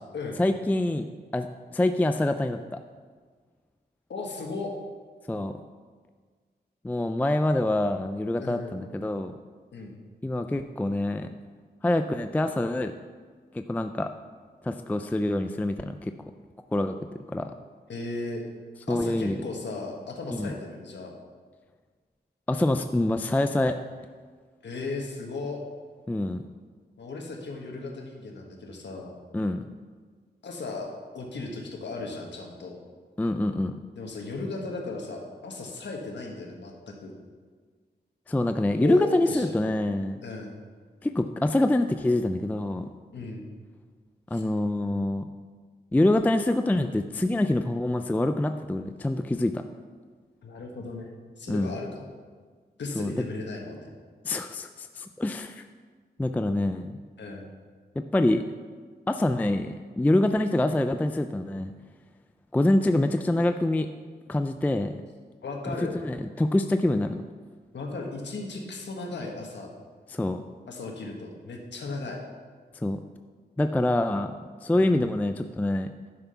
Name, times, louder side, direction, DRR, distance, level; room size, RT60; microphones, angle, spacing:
voice 1, 0.4-1.1 1.3-1.5 1.7-2.8 5.3-5.5 6.8-9.3 10.2-11.3 11.8-13.0 13.5-14.1 14.6-16.1 16.7-16.9 17.3-17.5 18.9-19.4 20.4-20.5 22.5-23.8 26.1-26.4 29.3-29.6 33.2-33.7 38.3-40.2 41.0-42.9 44.3-45.2 45.9-49.6 51.5-51.7 53.0-53.1 54.2-55.6 56.2-56.9 58.1-58.4 59.1-61.7 62.5-63.9 64.3-64.9 65.7-67.2 70.1-70.4 72.8-73.0 73.6-74.3 74.6-75.9, left 1 dB, 10° left, 8 dB, 0.3 m, -25 dB
voice 2, 4.1-4.7 8.4-8.8 9.7-10.0 17.9-18.4 18.9-21.1 24.6-25.6 27.0-29.2 30.4-32.8 33.9-37.1 38.7-39.5 40.2-40.6 43.1-43.5 44.3-44.4 50.4-52.1 52.8-53.9 57.2-57.5 65.4-66.0 67.7-69.7 70.7-72.2 74.7-74.9, left 3 dB, 85° left, 1 dB, 1.5 m, -36 dB
11.0 x 5.8 x 5.6 m, 1.5 s
wide cardioid pair, 135°, 18 cm